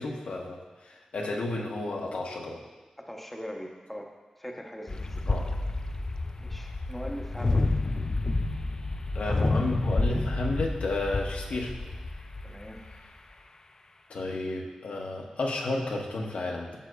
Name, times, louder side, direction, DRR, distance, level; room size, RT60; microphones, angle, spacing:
voice 1, 0.0-2.6 5.3-5.5 9.1-11.7 14.1-16.7, left 2 dB, 85° left, -1 dB, 0.9 m, -32 dB
voice 2, 3.0-4.1 4.4-5.3 6.4-7.7 12.4-12.8, equal, 5° left, 1 dB, 0.7 m, -40 dB
sound 1, 4.9-13.1, left 2 dB, 35° left, 0.4 m, -29 dB
11.0 x 6.3 x 2.3 m, 1.3 s
wide cardioid pair, 110°, 2 cm